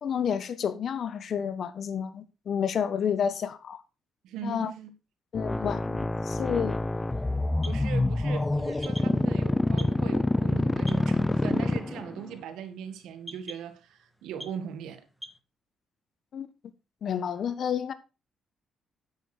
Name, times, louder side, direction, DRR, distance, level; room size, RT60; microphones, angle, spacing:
voice 1, 0.0-3.8 4.4-4.7 5.3-6.8 16.3-16.5 17.0-17.9, left 8 dB, 60° left, 1.3 m, -30 dB
voice 2, 4.2-4.9 7.6-15.1, right 8 dB, 85° right, 1.8 m, -40 dB
sound 1, 5.3-12.3, left 2 dB, 15° left, 0.5 m, -27 dB
sound 2, 5.4-15.4, equal, ahead, 1.8 m, -50 dB
9.8 x 8.5 x 4.3 m
cardioid pair, 90°, 0 cm